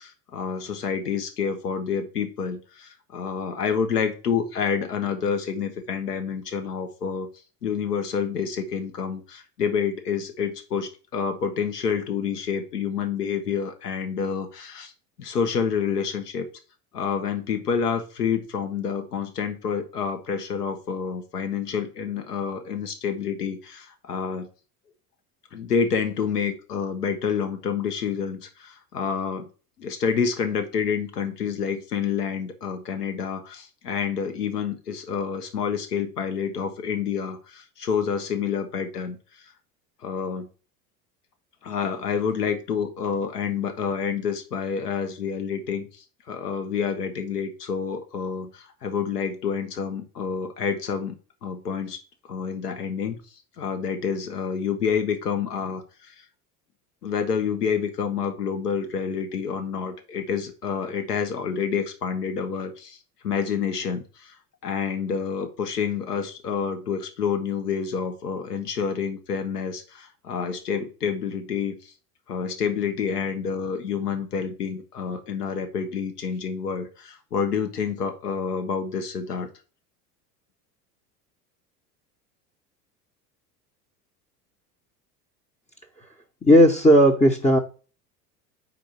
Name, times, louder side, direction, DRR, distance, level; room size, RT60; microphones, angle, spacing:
voice 1, 0.0-7.3 7.6-14.9 15.2-16.5 16.9-24.5 25.5-29.5 29.8-39.5 40.0-40.5 41.6-45.9 46.3-51.1 51.4-52.0 52.3-53.2 53.6-56.2 57.0-63.0 63.2-64.4 64.6-71.9 72.3-79.5, left 6 dB, 80° left, 8 dB, 1.4 m, -28 dB
voice 2, 86.4-87.6, equal, 15° left, 3 dB, 1.2 m, -15 dB
5.0 x 4.3 x 5.7 m, 0.35 s
hypercardioid pair, 75°, 47 cm